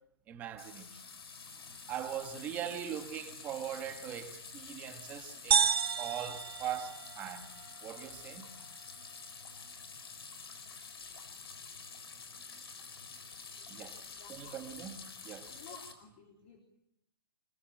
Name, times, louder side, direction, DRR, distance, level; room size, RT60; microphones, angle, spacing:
voice 1, 0.3-0.9 1.9-7.5 7.8-8.4 13.7-14.0 14.3-15.5, right 10 dB, 15° right, 1.6 m, -41 dB
sound 1, 0.6-15.9, left 5 dB, 85° left, 4.9 m, -48 dB
sound 2, 5.5-7.5, right 7 dB, 80° right, 1.2 m, -30 dB
voice 2, 14.2-14.6 15.5-16.6, left 6 dB, 30° left, 3.6 m, -53 dB
24.5 x 21.5 x 9.0 m
hypercardioid pair, 175°, 13 cm